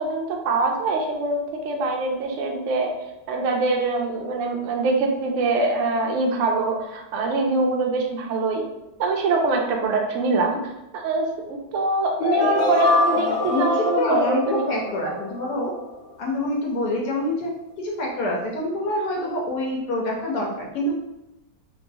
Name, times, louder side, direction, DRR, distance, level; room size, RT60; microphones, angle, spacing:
voice 1, 0.0-1.4 1.6-2.9 3.3-8.6 9.0-10.6 10.9-14.7, right 3 dB, 80° right, 1 dB, 0.6 m, -23 dB
sound 1, 12.2-16.1, left 3 dB, 90° left, 1.4 m, -25 dB
voice 2, 13.1-15.7 16.2-17.5 17.8-20.9, left 1 dB, 65° left, -2 dB, 1.2 m, -26 dB
3.0 x 3.0 x 2.6 m, 0.93 s
omnidirectional pair, 2.0 m